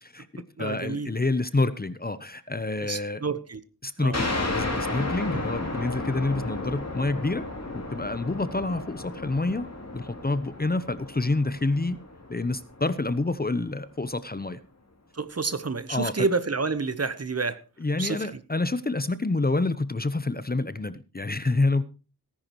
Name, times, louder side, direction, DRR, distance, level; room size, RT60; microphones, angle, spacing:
voice 1, 0.0-3.2 3.8-7.5 7.7-9.7 9.9-12.0 12.3-14.6 15.9-16.3 17.8-21.8, left 2 dB, 25° left, 14 dB, 0.7 m, -28 dB
voice 2, 0.6-1.1 2.8-3.6 4.0-4.2 5.3-5.5 15.1-17.6 18.0-18.4, right 4 dB, 40° right, 13 dB, 1.0 m, -29 dB
sound 1, 4.1-13.3, left 2 dB, 40° left, 3.3 m, -33 dB
18.0 x 10.5 x 3.1 m, 0.33 s
wide cardioid pair, 85°, 38 cm